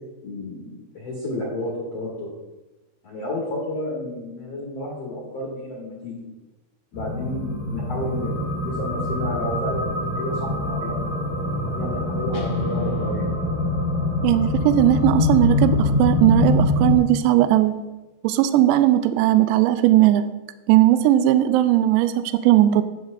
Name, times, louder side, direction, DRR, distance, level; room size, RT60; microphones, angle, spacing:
voice 1, 0.2-2.3 3.0-6.3 6.9-8.4 8.6-11.1 11.8-13.2, left 1 dB, 60° left, -4 dB, 1.6 m, -31 dB
sound 1, 6.9-17.0, left 2 dB, 20° right, 2.6 m, -24 dB
Guitar, 12.3-15.5, right 2 dB, 75° left, 2.8 m, -34 dB
voice 2, 14.2-17.8 18.2-20.3 20.7-22.8, right 13 dB, 90° right, 11 dB, 2.5 m, -18 dB
11.0 x 8.9 x 2.6 m, 1.1 s
omnidirectional pair, 5.6 m